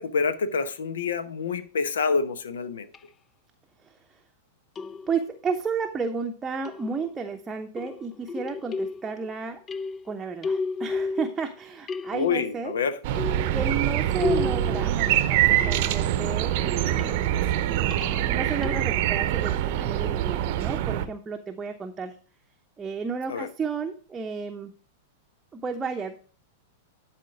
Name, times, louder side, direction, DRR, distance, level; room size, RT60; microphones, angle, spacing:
voice 1, 0.0-2.9 12.1-13.0 23.3-23.5, left 5 dB, 70° left, 12 dB, 1.0 m, -27 dB
sound 1, 2.9-3.0 4.8-5.4 6.7-7.3 7.8-9.3 9.7-11.6 11.9-12.5 13.2-16.1 16.7-17.3 17.9-19.0, left 4 dB, 25° left, 0.4 m, -33 dB
voice 2, 5.1-9.6 10.0-12.7 13.5-17.3 18.2-22.1 22.8-24.7 25.5-26.2, right 5 dB, 15° right, 4 dB, 0.8 m, -32 dB
sound 2, 13.0-21.0, right 12 dB, 50° right, 0.7 m, -24 dB
11.5 x 4.4 x 4.9 m, 0.40 s
figure-of-eight pair, 95°, 0 cm